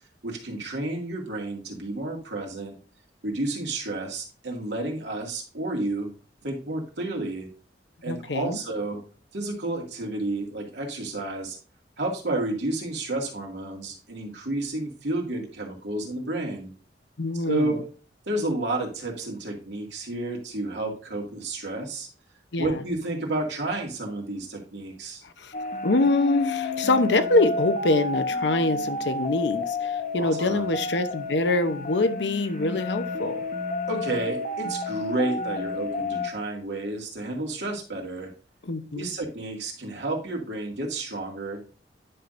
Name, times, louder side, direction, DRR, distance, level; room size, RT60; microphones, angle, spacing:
voice 1, 0.2-2.7 3.2-6.1 6.4-7.5 8.0-9.0 9.3-11.6 12.0-16.7 17.5-17.8 18.3-22.1 22.6-25.2 30.2-30.7 33.9-38.3 38.9-41.6, right 2 dB, 75° right, 2.2 m, -31 dB
voice 2, 8.0-8.6 17.2-17.8 22.5-22.8 25.2-25.5 25.8-33.4 38.6-39.1, left 2 dB, 75° left, 0.8 m, -25 dB
sound 1, 25.5-36.3, left 3 dB, 45° left, 0.8 m, -31 dB
10.0 x 5.8 x 2.6 m
head